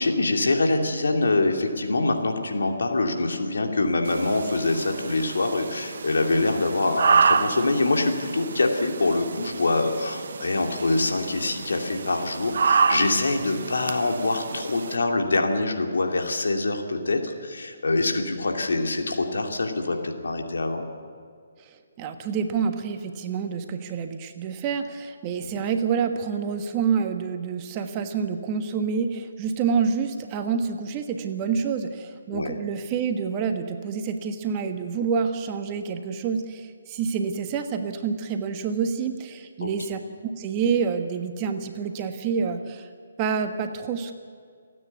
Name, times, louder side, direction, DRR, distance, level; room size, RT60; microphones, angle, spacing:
voice 1, 0.0-20.9 25.4-25.6 32.3-32.6 39.6-39.7, left 2 dB, 70° left, 3 dB, 2.6 m, -25 dB
sound 1, 4.0-15.0, right 5 dB, 60° right, 1.0 m, -28 dB
voice 2, 21.7-42.9 43.2-44.1, right 6 dB, 25° right, 6 dB, 1.4 m, -28 dB
29.0 x 9.7 x 9.3 m, 2.1 s
figure-of-eight pair, 140°, 0 cm